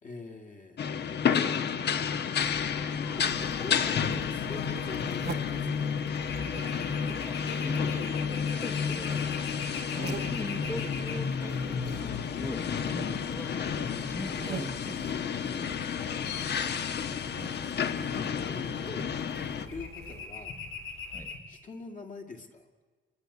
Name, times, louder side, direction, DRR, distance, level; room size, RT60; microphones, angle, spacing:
voice 1, 0.0-0.9 2.5-5.9 18.1-19.1 19.6-20.6 21.5-22.7, left 3 dB, 40° left, 4 dB, 2.2 m, -44 dB
sound 1, 0.8-19.7, left 7 dB, 55° left, 1.3 m, -31 dB
sound 2, 2.4-21.4, left 4 dB, 80° left, 3.8 m, -45 dB
sound 3, 3.2-20.3, right 8 dB, 55° right, 1.0 m, -47 dB
voice 2, 7.2-13.5 14.1-15.1 21.1-21.4, left 1 dB, 10° left, 7 dB, 1.0 m, -41 dB
29.0 x 21.5 x 8.3 m, 1.5 s
wide cardioid pair, 180°, 21 cm